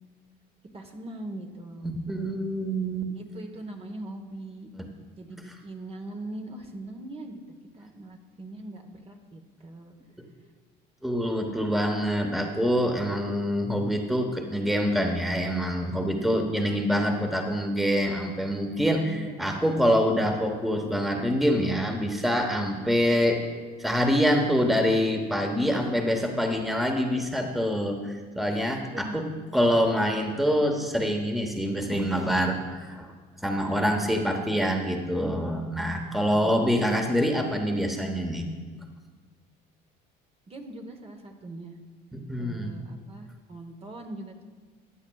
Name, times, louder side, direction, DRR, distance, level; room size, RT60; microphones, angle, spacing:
voice 1, 0.7-1.9 3.1-4.7 5.2-7.4 7.7-9.9 16.1-16.9 19.1-19.7 25.7-25.9 28.5-29.4 33.6-34.2 36.4-36.7 40.5-41.8 42.4-44.4, right 1 dB, 30° right, 4 dB, 1.1 m, -41 dB
voice 2, 1.8-3.1 11.0-23.4 23.8-29.2 29.5-33.1 33.4-38.5 42.1-42.8, equal, ahead, 3 dB, 1.1 m, -25 dB
15.0 x 9.8 x 2.3 m, 1.5 s
supercardioid pair, 90°, 19 cm